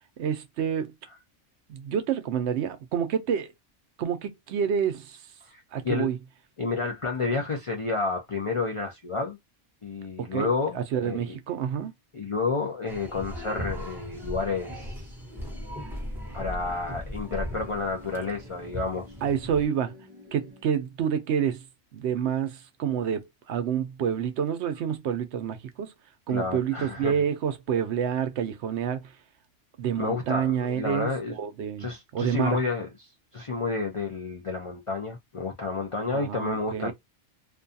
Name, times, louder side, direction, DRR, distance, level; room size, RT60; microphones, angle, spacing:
voice 1, 0.2-0.9 1.7-3.5 4.0-5.3 5.7-6.2 10.2-11.9 19.2-20.0 20.3-21.7 21.9-25.9 26.3-29.2 29.8-32.6 36.1-36.9, right 8 dB, 75° right, 0.8 m, -28 dB
voice 2, 5.5-6.1 6.6-9.4 9.8-11.3 12.1-15.2 16.3-19.1 26.3-27.1 30.0-31.4 31.8-32.9 33.3-36.9, left 4 dB, 55° left, 0.3 m, -30 dB
sound 1, 12.9-19.7, equal, ahead, 1.0 m, -38 dB
sound 2, 15.3-20.6, left 2 dB, 25° right, 0.6 m, -51 dB
2.5 x 2.3 x 2.5 m
omnidirectional pair, 1.2 m